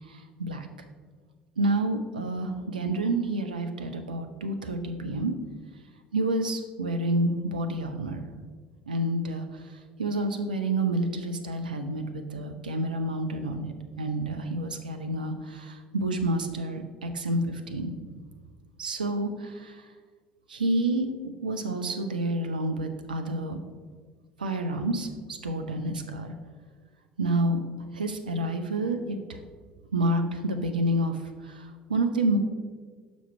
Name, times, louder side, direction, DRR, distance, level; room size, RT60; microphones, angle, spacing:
voice 1, 0.1-0.7 1.6-5.3 6.1-8.2 8.9-9.5 10.0-17.9 18.8-19.8 20.5-21.1 21.4-23.6 24.4-26.3 27.2-27.6 27.9-29.2 29.9-31.2 31.4-32.4, right 1 dB, 80° right, 6 dB, 0.5 m, -29 dB
6.2 x 5.2 x 4.4 m, 1.5 s
figure-of-eight pair, 60°, 5 cm